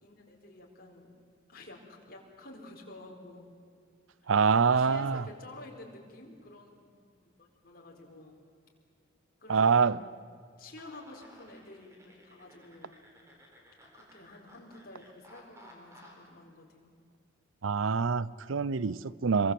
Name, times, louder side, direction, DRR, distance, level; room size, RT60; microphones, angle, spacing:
voice 1, 0.0-1.1 1.5-3.5 4.2-4.3 4.6-8.3 9.4-10.0 10.6-13.0 13.9-16.9, left 2 dB, 45° left, 4.5 m, -50 dB
voice 2, 4.3-5.2 9.5-10.0 17.6-19.5, right 5 dB, 75° right, 0.6 m, -25 dB
sound 1, 10.8-16.3, equal, 15° right, 4.2 m, -57 dB
27.0 x 23.0 x 7.8 m
head